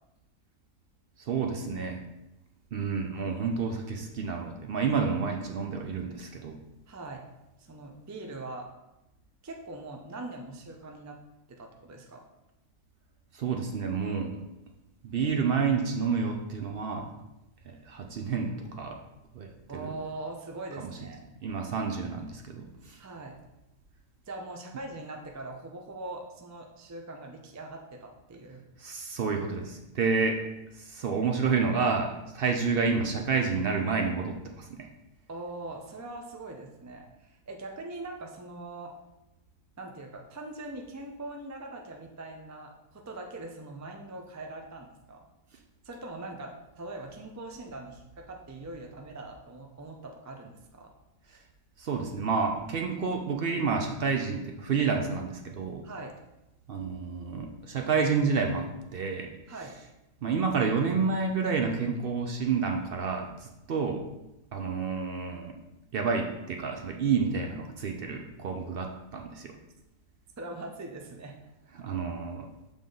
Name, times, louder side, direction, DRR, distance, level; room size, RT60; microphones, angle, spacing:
voice 1, 1.2-2.0 2.7-6.6 13.3-14.5 15.0-17.1 17.7-19.0 19.3-19.9 21.4-23.0 28.8-30.4 30.8-34.9 51.8-55.8 56.7-59.3 60.2-64.0 64.5-65.5 65.9-69.5 71.8-72.5, right 5 dB, 60° right, 3 dB, 0.7 m, -29 dB
voice 2, 6.9-7.2 7.6-8.7 9.4-11.2 11.5-12.2 19.7-21.2 23.0-23.4 24.3-28.6 35.3-38.9 39.8-45.2 45.8-50.9 55.8-56.1 59.5-59.7 70.4-71.3, right 2 dB, 25° right, 2 dB, 0.3 m, -42 dB
7.0 x 3.5 x 3.8 m, 0.94 s
omnidirectional pair, 1.3 m